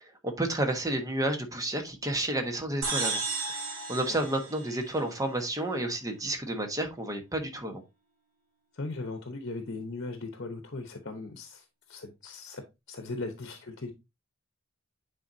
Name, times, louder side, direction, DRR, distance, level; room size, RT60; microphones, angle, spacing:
voice 1, 0.2-3.2 3.5-3.6 3.9-7.8, right 1 dB, 15° right, 1.2 m, -31 dB
sound 1, 2.8-5.4, right 3 dB, 80° right, 2.6 m, -34 dB
voice 2, 8.7-12.6 12.9-13.9, left 3 dB, 55° left, 1.0 m, -38 dB
9.3 x 4.2 x 2.7 m
head